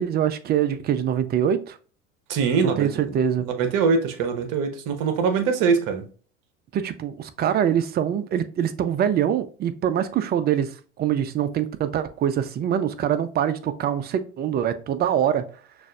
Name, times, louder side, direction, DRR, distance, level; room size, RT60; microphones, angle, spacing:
voice 1, 0.0-1.8 2.6-3.4 6.7-15.5, right 9 dB, 25° right, 0.4 m, -24 dB
voice 2, 2.3-2.9 3.4-6.0, right 5 dB, 50° right, 1.0 m, -23 dB
6.0 x 2.5 x 2.3 m
hypercardioid pair, 85°, 39 cm